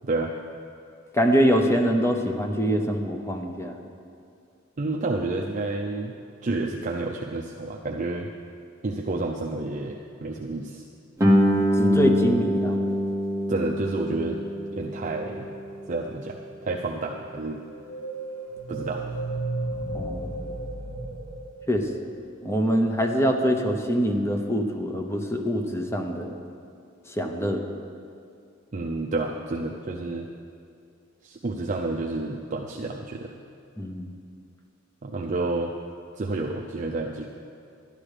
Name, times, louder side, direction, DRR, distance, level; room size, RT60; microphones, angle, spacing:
voice 1, 1.1-3.7 11.7-12.8 19.9-20.3 21.7-21.9 22.4-26.3 27.1-27.7 33.8-34.1, equal, 15° left, 3 dB, 0.8 m, -24 dB
voice 2, 4.8-6.2 6.4-8.3 8.8-10.8 13.5-14.4 14.7-15.5 15.9-17.6 18.7-19.1 28.7-30.3 31.2-33.4 35.0-35.7 36.2-37.3, right 2 dB, 35° right, 0 dB, 0.5 m, -30 dB
Guitar, 11.2-16.6, equal, 15° right, 1.1 m, -25 dB
sound 1, 17.6-22.2, right 2 dB, 60° left, 2.2 m, -33 dB
12.0 x 10.5 x 4.9 m, 2.4 s
head